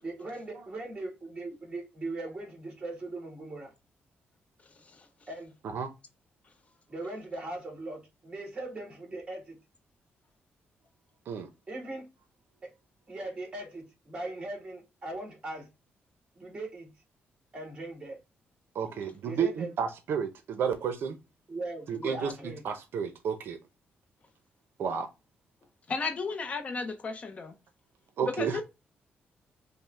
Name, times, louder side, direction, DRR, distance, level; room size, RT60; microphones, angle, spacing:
voice 1, 0.0-3.7 5.3-5.5 6.9-9.6 11.7-12.1 12.6-12.7 13.1-15.7 16.4-16.9 17.5-18.2 19.2-19.7 21.5-22.6, right 2 dB, 25° right, 1.9 m, -39 dB
voice 2, 18.7-21.2 21.9-22.3 22.6-23.6 24.8-25.1 28.2-28.6, right 7 dB, 70° right, 0.6 m, -31 dB
voice 3, 25.9-27.5 28.2-28.6, left 4 dB, 35° left, 0.6 m, -34 dB
5.5 x 2.1 x 3.3 m
wide cardioid pair, 160°, 4 cm